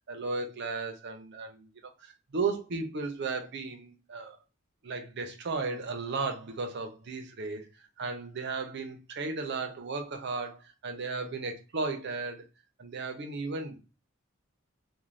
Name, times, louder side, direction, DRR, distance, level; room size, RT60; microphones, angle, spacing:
voice 1, 0.1-1.7 2.0-4.4 4.8-12.4 12.8-13.8, right 4 dB, 55° right, 0.5 m, -35 dB
2.5 x 2.1 x 3.1 m
head